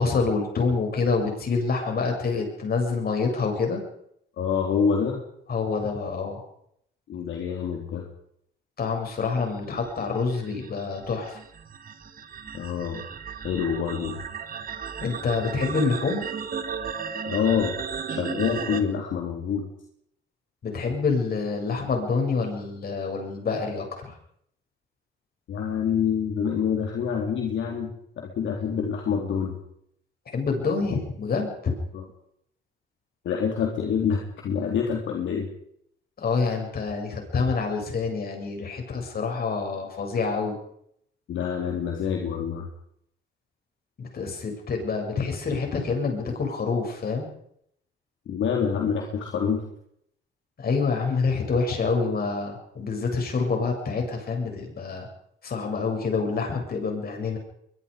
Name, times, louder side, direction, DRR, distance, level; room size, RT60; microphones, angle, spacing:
voice 1, 0.0-3.8 5.5-6.4 8.8-11.4 15.0-16.2 20.6-23.9 30.3-31.7 36.2-40.6 44.0-47.3 50.6-55.1 55.4-57.4, left 4 dB, 50° left, 3 dB, 7.6 m, -27 dB
voice 2, 4.4-5.2 7.1-8.1 12.5-13.0 13.4-14.2 17.3-17.7 18.1-19.7 25.5-29.6 31.9-32.1 33.3-35.5 41.3-42.7 48.3-49.6, left 7 dB, 70° left, 1 dB, 3.6 m, -26 dB
sound 1, 9.5-18.8, right 6 dB, 45° right, 2.5 m, -35 dB
23.0 x 22.5 x 5.2 m, 0.71 s
cardioid pair, 90°, 20 cm